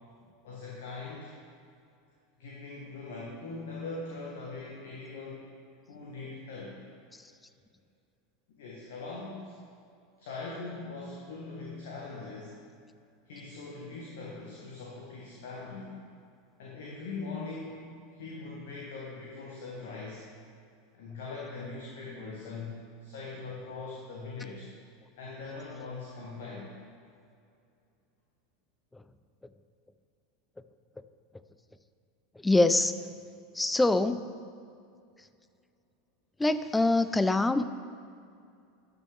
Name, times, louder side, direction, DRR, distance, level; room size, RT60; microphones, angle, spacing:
voice 1, 0.4-1.3 2.4-5.4 5.9-6.8 8.6-9.5 10.2-12.6 13.3-15.9 16.6-20.3 20.9-24.7 25.2-26.8, left 3 dB, 60° left, -4 dB, 1.3 m, -41 dB
voice 2, 32.4-32.9 33.6-34.2 36.4-37.7, left 2 dB, 10° left, 12 dB, 0.4 m, -24 dB
12.0 x 6.2 x 3.4 m, 2.4 s
figure-of-eight pair, 80°, 0 cm